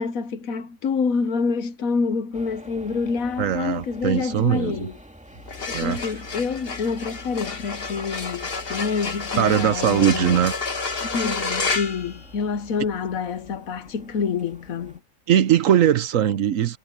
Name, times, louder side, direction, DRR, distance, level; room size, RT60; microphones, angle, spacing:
voice 1, 0.0-5.0 5.8-10.4 11.0-15.0, left 5 dB, 70° left, 1.4 m, -27 dB
sound 1, 2.3-15.0, equal, 5° right, 2.4 m, -49 dB
voice 2, 3.4-4.9 5.7-6.0 9.4-10.5 15.3-16.8, right 10 dB, 65° right, 1.1 m, -20 dB
sound 2, 5.4-12.8, left 4 dB, 40° left, 1.6 m, -30 dB
omnidirectional pair, 1.5 m